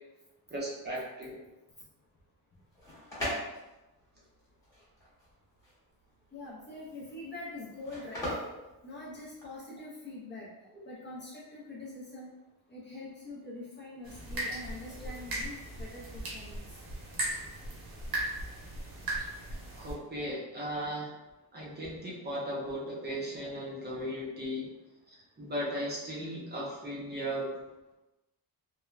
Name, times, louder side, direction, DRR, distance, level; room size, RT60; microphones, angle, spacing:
voice 1, 0.5-1.4 15.0-15.1 19.7-21.1 21.5-24.7 25.4-27.5, equal, 25° right, -5 dB, 0.5 m, -36 dB
sound 1, 2.6-9.6, equal, 10° left, 0.9 m, -40 dB
voice 2, 6.3-8.3 8.8-10.5 10.8-12.3 12.7-16.8, left 2 dB, 30° left, -6 dB, 0.4 m, -44 dB
sound 2, 14.0-19.9, right 1 dB, 70° right, 0.8 m, -37 dB
3.0 x 2.1 x 2.3 m, 1.0 s
wide cardioid pair, 175°, 39 cm